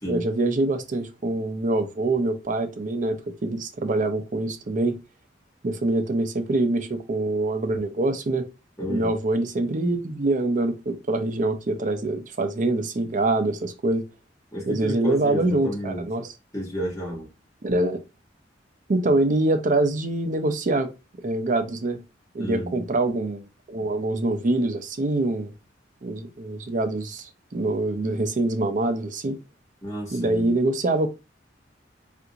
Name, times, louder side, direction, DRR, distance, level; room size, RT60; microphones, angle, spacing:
voice 1, 0.1-5.0 5.6-8.5 8.9-14.0 14.7-16.3 17.6-18.0 18.9-20.9 21.2-22.0 22.3-25.5 26.0-29.4 30.1-31.1, right 2 dB, 45° right, 0.5 m, -25 dB
voice 2, 8.8-9.1 14.5-16.0 16.5-17.3 22.4-22.8 29.8-30.5, equal, 15° left, 1.4 m, -31 dB
3.5 x 2.5 x 2.8 m
head